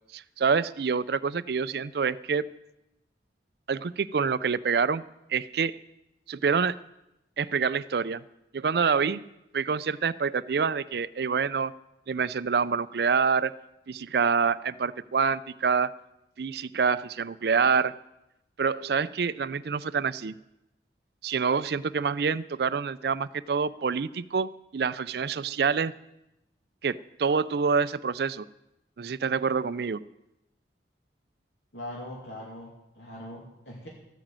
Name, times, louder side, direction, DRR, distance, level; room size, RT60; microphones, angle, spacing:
voice 1, 0.1-2.4 3.7-5.0 5.3-5.8 6.3-6.8 7.4-8.2 8.5-9.2 9.5-11.7 12.1-13.5 13.9-15.9 16.4-17.9 18.6-20.3 21.2-25.9 26.8-28.4 29.0-30.0, right 5 dB, 60° right, 16 dB, 0.4 m, -26 dB
voice 2, 31.7-33.9, left 1 dB, 70° left, -2 dB, 2.5 m, -41 dB
14.0 x 9.0 x 7.5 m, 0.90 s
head